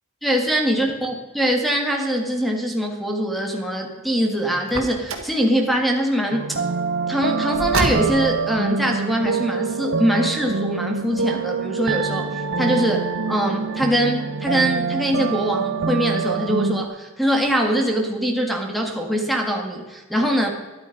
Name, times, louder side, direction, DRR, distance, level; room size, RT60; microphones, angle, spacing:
voice 1, 0.2-6.6 7.1-20.5, equal, ahead, 2 dB, 1.8 m, -23 dB
Car, 4.6-5.4 7.5-8.4, right 2 dB, 70° right, 2.0 m, -26 dB
sound 1, 6.3-16.9, right 4 dB, 55° right, 0.7 m, -25 dB
13.0 x 12.0 x 5.3 m, 1.2 s
head